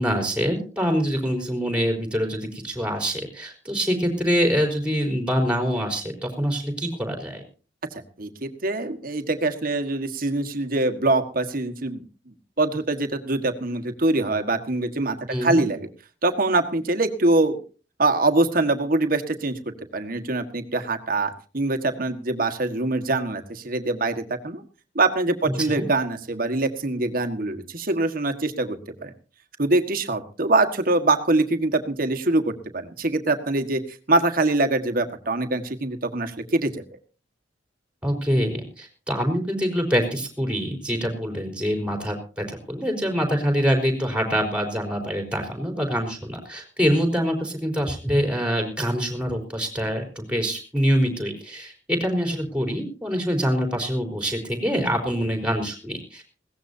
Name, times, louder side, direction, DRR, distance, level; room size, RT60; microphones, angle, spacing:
voice 1, 0.0-7.4 15.3-15.6 25.6-25.9 38.0-56.2, equal, 5° right, 3 dB, 4.0 m, -25 dB
voice 2, 8.2-15.9 16.2-17.6 18.0-24.6 24.9-29.1 29.6-36.7, right 2 dB, 50° right, 7 dB, 1.6 m, -24 dB
21.0 x 17.0 x 2.8 m, 0.36 s
head